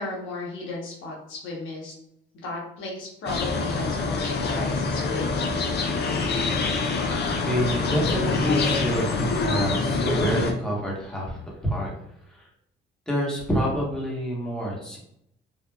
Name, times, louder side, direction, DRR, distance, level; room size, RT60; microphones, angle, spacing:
voice 1, 0.0-1.9 2.3-5.5, left 2 dB, 75° left, -3 dB, 1.0 m, -35 dB
sound 1, 3.3-10.5, left 3 dB, 60° left, 0.5 m, -25 dB
voice 2, 7.4-11.9 12.3-12.5 13.1-15.0, equal, 5° left, -4 dB, 1.1 m, -27 dB
3.2 x 2.3 x 2.2 m, 0.75 s
cardioid pair, 90°, 20 cm